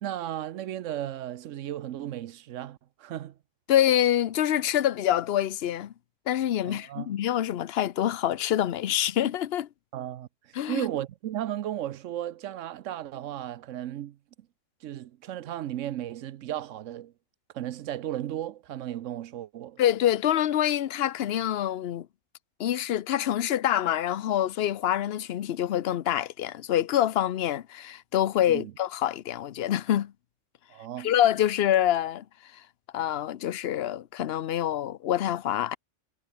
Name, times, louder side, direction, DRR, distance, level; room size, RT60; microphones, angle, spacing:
voice 1, 0.0-3.4 6.6-7.2 9.9-14.2 14.8-17.1 17.5-19.8 28.5-28.7 30.7-31.1, right 12 dB, 75° right, 1.0 m, -35 dB
voice 2, 3.7-5.9 6.3-9.7 10.5-10.9 19.8-22.1 22.6-30.1 31.0-32.2 32.9-35.8, left 11 dB, 60° left, 0.8 m, -26 dB
omnidirectional pair, 1.3 m